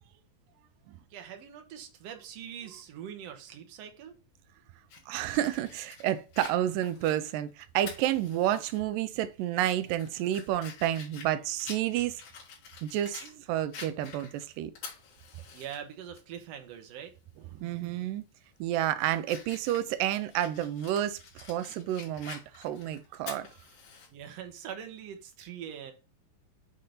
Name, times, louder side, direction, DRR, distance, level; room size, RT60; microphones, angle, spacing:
voice 1, 1.1-4.2 15.5-17.1 24.1-25.9, right 9 dB, 65° right, 1.7 m, -43 dB
Fire, 4.9-8.8 9.2-9.3 9.8-13.3 13.7-15.8 16.2-16.3 17.8-18.0 18.5-24.1, left 5 dB, 80° left, 3.8 m, -48 dB
voice 2, 5.1-12.2 12.8-14.7 17.6-18.2 18.6-23.5, right 12 dB, 85° right, 2.2 m, -30 dB
7.8 x 2.8 x 4.9 m
omnidirectional pair, 3.9 m